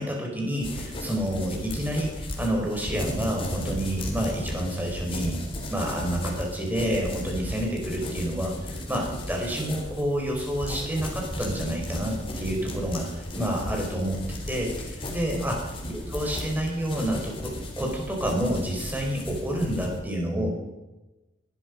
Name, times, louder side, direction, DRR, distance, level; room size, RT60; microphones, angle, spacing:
voice 1, 0.0-5.4 5.7-20.5, equal, 10° right, 0 dB, 4.6 m, -29 dB
sound 1, 0.6-20.0, left 1 dB, 30° left, 3.3 m, -35 dB
21.0 x 12.5 x 5.3 m, 1.1 s
head